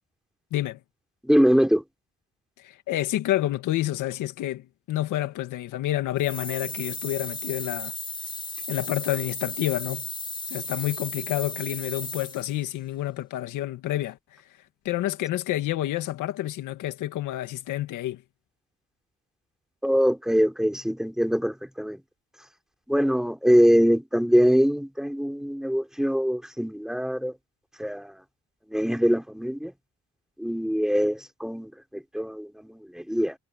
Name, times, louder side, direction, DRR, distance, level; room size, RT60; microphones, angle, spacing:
voice 1, 1.3-1.8 19.8-22.0 22.9-27.3 27.8-28.1 28.7-29.7 30.4-33.4, equal, ahead, 4.5 m, -23 dB
voice 2, 2.6-7.9 8.7-10.1 10.5-14.2 14.9-18.2, left 14 dB, 90° left, 2.0 m, -29 dB
sound 1, 6.2-12.6, left 2 dB, 15° left, 3.9 m, -35 dB
cardioid pair, 90°, 30 cm